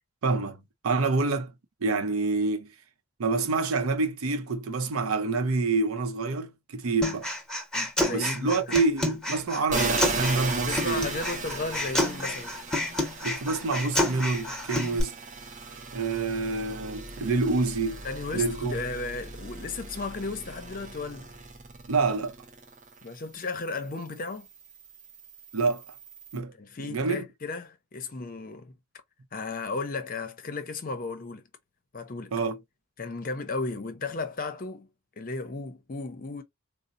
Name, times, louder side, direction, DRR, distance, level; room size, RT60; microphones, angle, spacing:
voice 1, 0.2-1.5 1.8-2.7 3.2-7.3 8.1-11.1 13.2-15.1 15.9-18.0 18.3-18.8 21.9-22.3 25.5-25.8 26.3-26.5 26.9-27.3 32.3-32.6, right 3 dB, 85° right, 0.6 m, -27 dB
Human voice, 7.0-15.0, left 1 dB, 5° left, 0.8 m, -30 dB
voice 2, 7.7-8.8 10.6-12.6 18.0-21.3 23.0-24.5 26.6-28.7 29.3-31.5 31.9-32.3 33.0-34.9 35.2-36.4, left 3 dB, 40° left, 0.6 m, -34 dB
sound 1, 9.7-23.1 23.5-26.4, right 3 dB, 35° right, 0.6 m, -37 dB
4.0 x 2.0 x 2.5 m
head